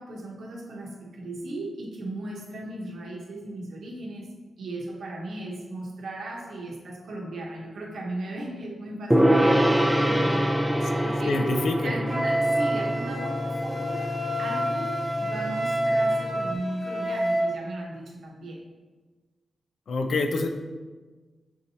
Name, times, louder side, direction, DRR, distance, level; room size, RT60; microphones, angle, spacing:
voice 1, 0.0-4.3 4.6-11.4 11.8-14.1 14.4-18.6, right 1 dB, 85° right, -1 dB, 0.9 m, -37 dB
Gong, 9.1-16.5, equal, 5° right, 0.4 m, -25 dB
voice 2, 11.2-11.9 19.9-20.5, left 3 dB, 75° left, 5 dB, 0.4 m, -26 dB
Wind instrument woodwind instrument, 12.1-17.5, right 1 dB, 30° left, 1.0 m, -28 dB
6.3 x 2.7 x 2.8 m, 1.3 s
wide cardioid pair, 90°, 0 cm